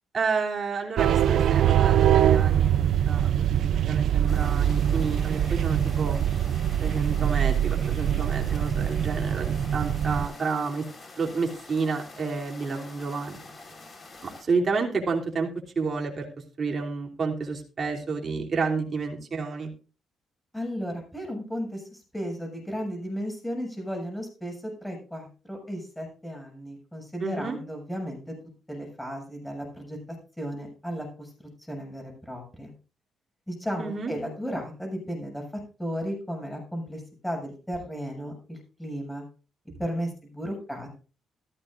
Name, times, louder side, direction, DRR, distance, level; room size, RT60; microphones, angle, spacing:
voice 1, 0.1-2.7 3.1-6.2 6.8-10.8 11.2-13.5 14.2-15.5 15.7-16.3 16.6-19.7 27.2-27.6 33.8-34.1, right 4 dB, 40° right, 0 dB, 3.1 m, -30 dB
sound 1, 1.0-10.3, right 10 dB, 70° right, 0.6 m, -23 dB
sound 2, 4.3-14.4, left 3 dB, 30° left, 4.3 m, -46 dB
voice 2, 20.5-28.3 28.7-30.0 30.4-31.3 31.7-32.7 33.5-35.4 35.8-39.2 39.8-40.9, equal, 5° left, 1 dB, 6.8 m, -34 dB
15.5 x 13.5 x 2.6 m, 0.36 s
cardioid pair, 90°, 0 cm